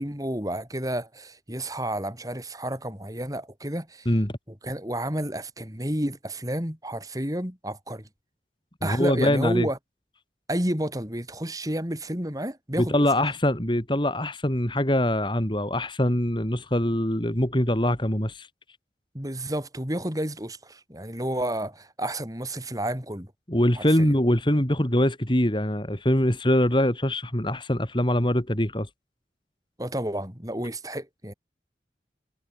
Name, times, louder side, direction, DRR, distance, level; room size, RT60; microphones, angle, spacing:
voice 1, 0.0-4.1 4.6-8.1 8.8-9.8 10.5-13.0 19.1-23.3 23.8-24.2 29.8-31.3, right 1 dB, 20° right, 5.6 m, -31 dB
voice 2, 4.0-4.4 8.8-9.7 12.8-18.5 23.5-28.9, left 1 dB, 25° left, 3.0 m, -23 dB
head